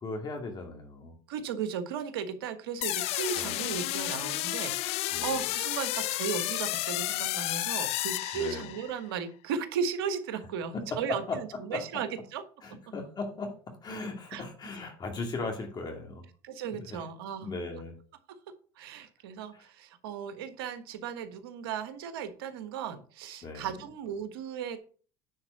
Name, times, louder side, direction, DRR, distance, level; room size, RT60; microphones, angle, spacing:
voice 1, 0.0-1.2 3.3-3.6 5.1-5.3 8.3-8.7 10.7-11.4 11.7-11.8 12.6-13.5 13.8-16.3 16.7-17.0 17.4-18.0 23.4-23.7, left 3 dB, 35° left, 3 dB, 2.3 m, -37 dB
voice 2, 1.3-12.4 14.3-14.4 16.4-17.6 18.8-24.8, right 7 dB, 85° right, 9 dB, 1.4 m, -36 dB
sound 1, 2.8-9.0, left 17 dB, 60° left, 0.5 m, -32 dB
9.6 x 4.3 x 6.5 m, 0.41 s
supercardioid pair, 100°, 12 cm